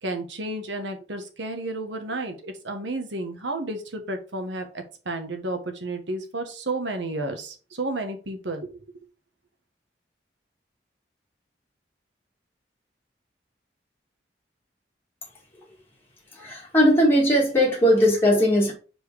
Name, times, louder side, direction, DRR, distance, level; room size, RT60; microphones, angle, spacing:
voice 1, 0.0-8.7, right 2 dB, 85° right, 6 dB, 1.4 m, -32 dB
voice 2, 16.3-18.7, equal, 10° left, -4 dB, 2.2 m, -19 dB
5.1 x 4.7 x 4.9 m, 0.36 s
head